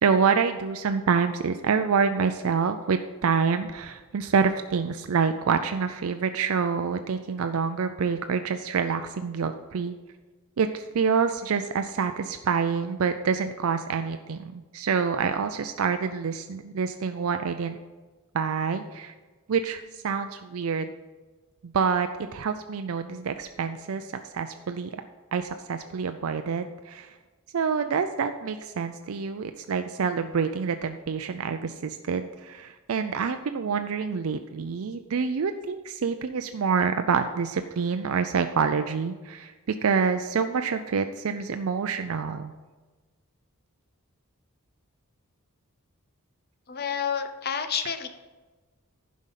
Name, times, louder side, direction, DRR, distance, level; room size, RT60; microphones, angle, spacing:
voice 1, 0.0-9.9 10.6-17.8 18.3-19.1 19.5-20.9 21.6-24.9 25.3-27.1 27.5-42.5 47.8-47.9, right 5 dB, 65° right, 8 dB, 0.4 m, -27 dB
voice 2, 46.7-48.1, left 7 dB, 45° left, 9 dB, 0.7 m, -29 dB
11.0 x 5.2 x 5.7 m, 1.3 s
head